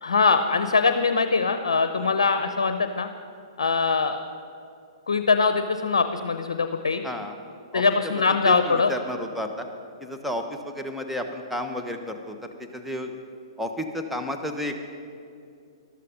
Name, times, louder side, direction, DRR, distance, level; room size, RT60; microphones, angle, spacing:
voice 1, 0.0-3.1 3.6-4.2 5.1-7.0 7.7-8.9, left 4 dB, 75° left, 9 dB, 0.7 m, -22 dB
voice 2, 7.0-7.4 7.7-7.8 8.4-9.7 10.0-13.2 13.6-14.8, left 1 dB, ahead, 3 dB, 1.0 m, -32 dB
13.5 x 12.5 x 5.3 m, 2.5 s
figure-of-eight pair, 120°, 3 cm